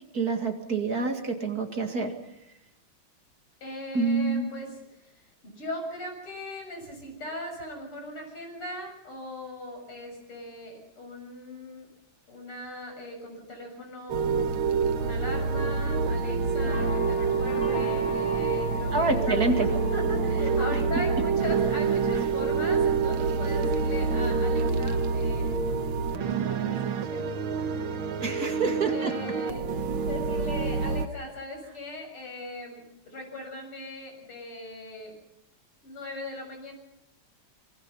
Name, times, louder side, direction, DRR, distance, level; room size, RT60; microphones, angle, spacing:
voice 1, 0.1-2.1 3.9-4.5 18.9-19.7 28.2-29.1, right 3 dB, 45° right, 6 dB, 2.6 m, -27 dB
voice 2, 3.6-11.9 12.3-14.5 14.9-25.5 26.2-27.3 27.6-27.7 28.0-28.5 28.9-35.2 35.8-36.7, left 1 dB, 85° left, 3 dB, 7.9 m, -39 dB
sound 1, 14.1-31.1, right 5 dB, 70° right, 2.0 m, -27 dB
sound 2, 16.2-28.3 28.7-30.3 30.7-31.0 31.3-31.4, left 2 dB, 60° left, 3.7 m, -40 dB
26.0 x 23.5 x 5.6 m, 0.82 s
omnidirectional pair, 2.4 m